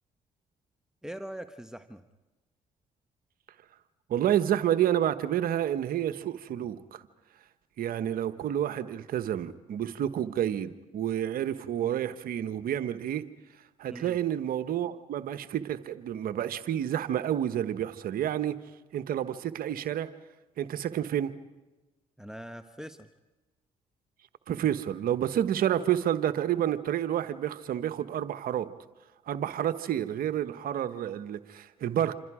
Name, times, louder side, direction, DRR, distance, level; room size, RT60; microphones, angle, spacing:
voice 1, 1.0-2.0 13.9-14.2 22.2-23.1, right 1 dB, 5° right, 8 dB, 1.2 m, -42 dB
voice 2, 4.1-7.0 7.8-13.2 13.8-18.6 18.9-20.1 20.6-21.3 24.5-28.7 29.3-32.1, right 10 dB, 65° right, 11 dB, 1.1 m, -29 dB
27.5 x 26.5 x 4.9 m, 1.1 s
hypercardioid pair, 50°, 16 cm